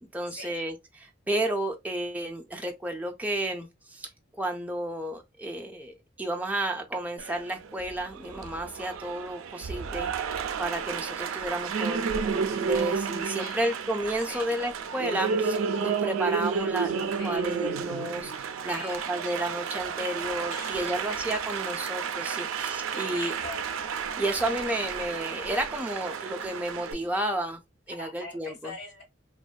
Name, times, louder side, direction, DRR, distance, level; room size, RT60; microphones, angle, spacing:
voice 1, 0.0-4.1 4.4-23.3 24.2-27.6 27.9-28.8, right 1 dB, 10° right, 0.3 m, -32 dB
Applause, 7.2-26.9, right 6 dB, 80° right, 0.3 m, -32 dB
voice 2, 13.2-13.6 14.2-14.5 17.2-17.4 18.7-19.1 20.5-21.3 22.4-23.8 28.0-29.0, left 2 dB, 55° left, 1.2 m, -43 dB
2.5 x 2.2 x 2.3 m
head